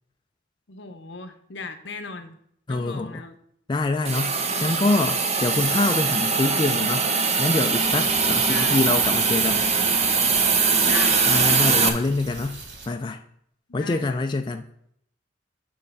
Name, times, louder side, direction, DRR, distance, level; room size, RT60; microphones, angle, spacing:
voice 1, 0.7-2.3 2.7-3.3 8.5-8.8 10.8-11.6 13.7-14.2, left 4 dB, 65° left, 8 dB, 0.9 m, -37 dB
voice 2, 2.7-3.2 3.7-9.7 11.3-12.6 12.9-13.2 13.7-14.7, left 3 dB, 25° left, 6 dB, 0.4 m, -25 dB
Hiss, 4.1-11.9, right 5 dB, 35° right, 0.9 m, -21 dB
sound 1, 7.8-12.9, right 3 dB, 65° right, 1.5 m, -40 dB
9.5 x 3.4 x 6.6 m, 0.71 s
head